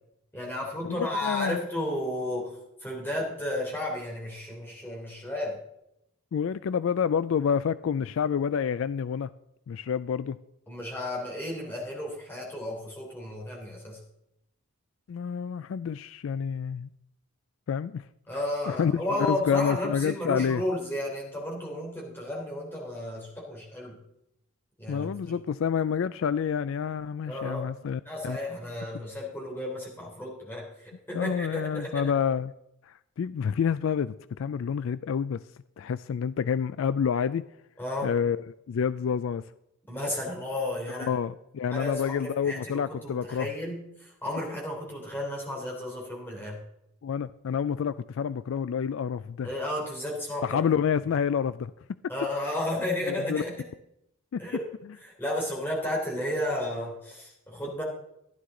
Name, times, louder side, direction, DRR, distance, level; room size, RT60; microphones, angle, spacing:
voice 1, 0.3-2.6 2.8-5.6 10.7-14.0 18.3-24.0 24.8-25.4 27.3-27.7 28.1-32.0 37.8-38.1 39.9-41.2 41.7-46.6 49.4-50.6 52.1-53.6 54.4-54.6 55.0-57.8, left 1 dB, 10° left, -3 dB, 3.6 m, -33 dB
voice 2, 1.2-1.6 6.3-9.3 9.7-10.4 15.1-16.9 17.7-18.0 18.7-20.6 24.9-28.4 31.1-32.5 32.9-35.4 35.8-37.4 38.0-39.4 40.9-43.5 47.0-49.5 50.4-51.7 52.4-52.5 53.3-53.4 54.3-54.4, left 7 dB, 60° left, 15 dB, 0.3 m, -28 dB
14.5 x 11.0 x 3.8 m, 0.81 s
head